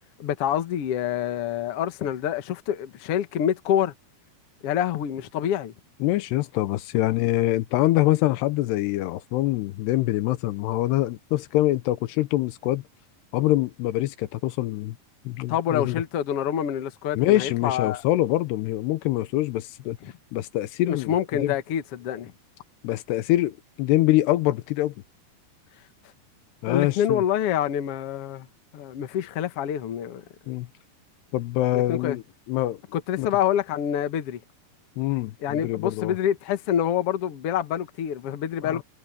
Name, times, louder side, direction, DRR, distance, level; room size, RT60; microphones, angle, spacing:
voice 1, 0.2-3.9 4.6-5.7 15.5-18.0 20.0-20.1 20.9-22.3 26.7-28.5 28.7-30.2 31.7-32.2 32.9-34.4 35.4-38.8, left 10 dB, 60° left, 1.5 m, -26 dB
voice 2, 6.0-12.8 13.3-15.0 15.3-16.0 17.2-20.0 20.3-21.1 21.4-21.5 22.8-24.9 26.6-27.2 30.5-30.7 31.3-32.8 33.2-33.3 35.0-36.2 38.6-38.8, left 16 dB, 85° left, 3.0 m, -24 dB
omnidirectional pair, 4.7 m